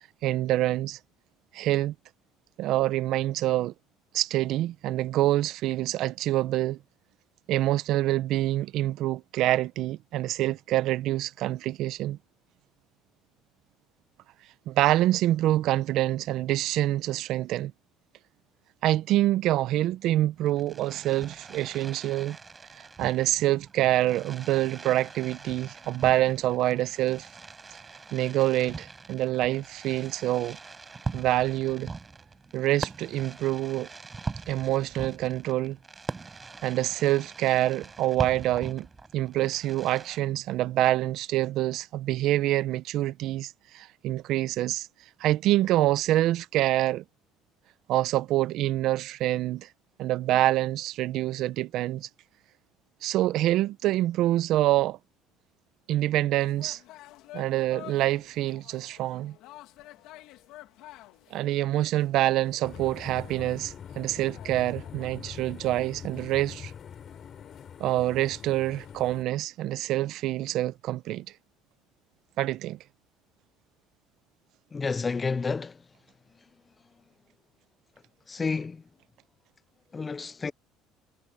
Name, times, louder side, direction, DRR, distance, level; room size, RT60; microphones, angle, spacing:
voice 1, 0.2-1.0 1.5-1.9 2.6-3.7 4.1-6.8 7.5-12.2 14.7-17.7 18.8-22.4 22.8-27.3 28.1-30.6 31.1-31.9 32.5-33.9 34.5-35.8 36.6-38.9 39.1-44.9 45.2-47.0 47.9-49.7 50.0-52.1 53.0-55.0 55.9-56.8 57.3-59.4 61.3-66.7 67.8-71.3 72.4-72.8, right 15 dB, 65° right, 0.8 m, -26 dB
Fireworks, 20.4-40.2, right 4 dB, 25° right, 5.0 m, -42 dB
sound 1, 56.4-69.2, left 16 dB, 70° left, 2.9 m, -52 dB
sound 2, 62.6-69.2, left 8 dB, 45° left, 4.3 m, -43 dB
voice 2, 74.7-75.8 78.3-78.8 79.9-80.5, left 4 dB, 25° left, 0.6 m, -30 dB
supercardioid pair, 85°, 0 cm